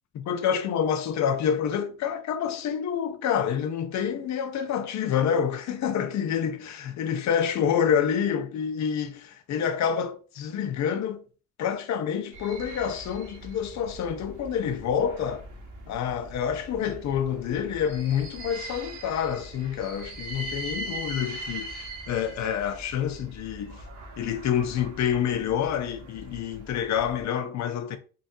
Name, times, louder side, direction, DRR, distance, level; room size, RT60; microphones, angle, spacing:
voice 1, 0.1-11.2 11.6-15.4 15.9-23.8 24.2-28.0, left 8 dB, 65° left, 0.6 m, -28 dB
sound 1, 12.3-27.2, right 1 dB, 85° right, 1.1 m, -41 dB
3.9 x 2.4 x 2.6 m
cardioid pair, 90°, 30 cm